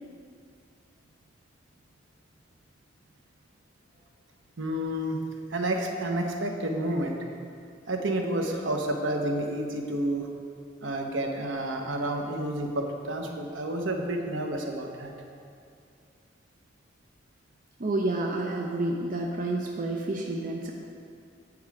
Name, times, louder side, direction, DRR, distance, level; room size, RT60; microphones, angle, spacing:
voice 1, 4.6-5.2 5.5-7.2 7.9-10.3 10.8-15.1, right 1 dB, 75° right, 3 dB, 0.8 m, -30 dB
voice 2, 17.8-20.7, right 2 dB, 45° right, -1 dB, 0.5 m, -29 dB
8.6 x 4.7 x 4.7 m, 2.3 s
head